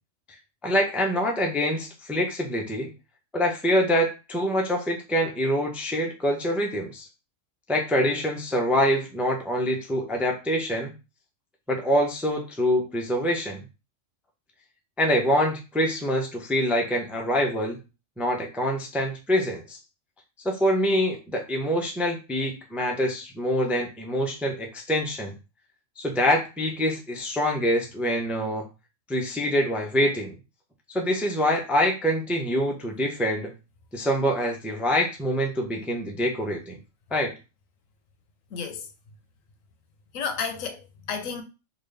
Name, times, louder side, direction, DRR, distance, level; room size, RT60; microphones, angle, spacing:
voice 1, 0.6-2.9 3.3-7.1 7.7-10.9 11.7-13.6 15.0-17.8 18.2-19.8 20.4-25.3 26.0-28.7 29.1-30.3 30.9-33.5 33.9-36.8 37.1-37.3, equal, ahead, 0.4 m, -25 dB
voice 2, 38.5-38.8 40.1-41.4, left 6 dB, 85° left, 1.1 m, -32 dB
3.9 x 2.5 x 3.3 m
omnidirectional pair, 1.4 m